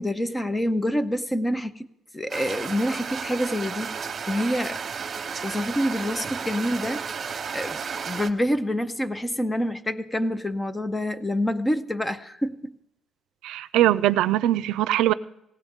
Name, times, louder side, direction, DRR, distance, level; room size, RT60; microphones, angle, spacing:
voice 1, 0.0-1.9 2.1-4.0 4.3-4.8 5.4-12.7, equal, 10° left, 0.6 m, -27 dB
sound 1, 2.3-8.3, right 6 dB, 35° right, 1.1 m, -33 dB
voice 2, 13.4-15.1, right 13 dB, 90° right, 0.5 m, -21 dB
19.0 x 16.5 x 3.6 m
cardioid pair, 135°, 0 cm